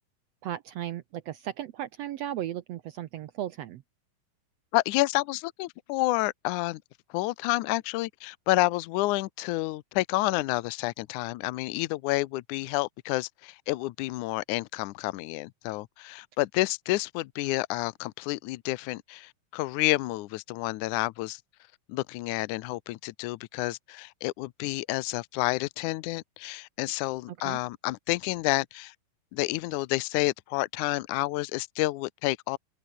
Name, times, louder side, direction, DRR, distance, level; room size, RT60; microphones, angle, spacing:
voice 1, 0.4-3.8 27.4-27.6, right 12 dB, 90° right, 1.4 m, -35 dB
voice 2, 4.7-6.8 7.1-21.4 21.9-28.9 29.3-32.6, left 19 dB, 75° left, 1.9 m, -29 dB
open air
omnidirectional pair, 4.1 m